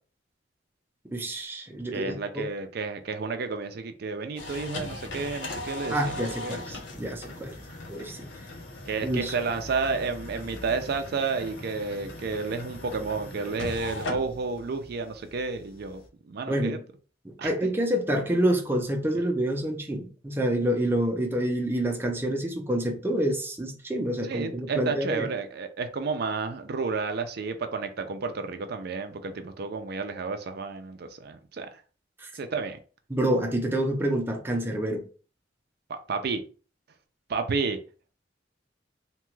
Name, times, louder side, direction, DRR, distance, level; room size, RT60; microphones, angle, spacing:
voice 1, 1.1-2.5 5.9-7.6 7.9-8.3 9.0-9.3 16.5-16.8 17.4-25.3 32.2-32.3 33.1-35.0, right 1 dB, 10° right, 0.6 m, -27 dB
voice 2, 1.9-6.6 8.9-16.8 17.4-17.5 19.1-19.2 24.2-31.8 32.3-32.8 35.9-36.4 37.3-37.8, right 4 dB, 60° right, 0.4 m, -31 dB
sound 1, 4.4-16.1, left 2 dB, 80° left, 0.7 m, -39 dB
2.9 x 2.3 x 3.1 m
head